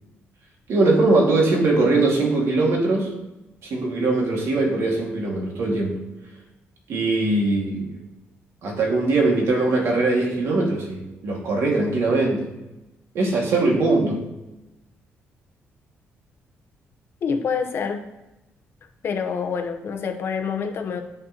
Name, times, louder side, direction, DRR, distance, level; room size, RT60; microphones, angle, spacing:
voice 1, 0.7-3.1 3.6-6.0 6.9-7.9 8.6-12.5 13.1-14.2, right 2 dB, 75° right, -1 dB, 1.9 m, -21 dB
voice 2, 17.2-18.0 19.0-21.0, left 6 dB, 55° left, 5 dB, 0.8 m, -26 dB
9.4 x 5.1 x 2.9 m, 0.98 s
cardioid pair, 125°, 5 cm